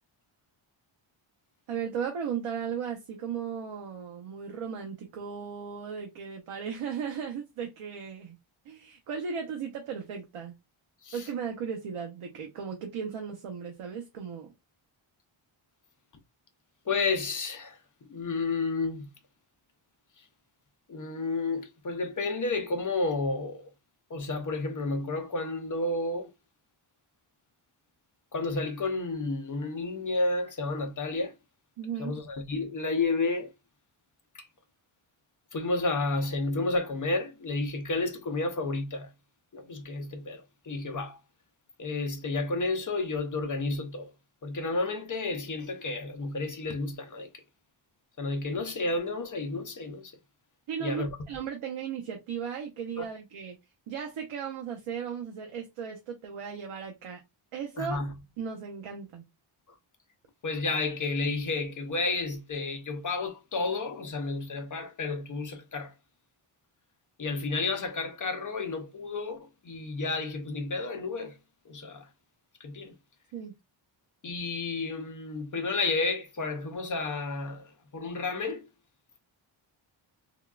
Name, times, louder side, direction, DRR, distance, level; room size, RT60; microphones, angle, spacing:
voice 1, 1.7-8.4 8.7-10.6 11.1-14.5 31.8-32.2 50.7-53.6 53.9-57.2 57.5-58.0 58.4-59.3 73.3-73.5, right 7 dB, 85° right, 0.8 m, -36 dB
voice 2, 16.9-17.8 18.1-19.1 20.9-23.7 24.1-26.3 28.3-31.3 32.0-33.5 35.5-39.1 39.5-41.2 41.8-44.1 44.4-47.3 48.2-50.1 50.8-51.1 53.0-53.1 57.8-58.1 60.4-65.9 67.2-71.4 71.7-72.1 72.6-72.9 74.2-78.6, left 3 dB, 40° left, 0.5 m, -31 dB
3.6 x 2.2 x 2.3 m
wide cardioid pair, 135°, 49 cm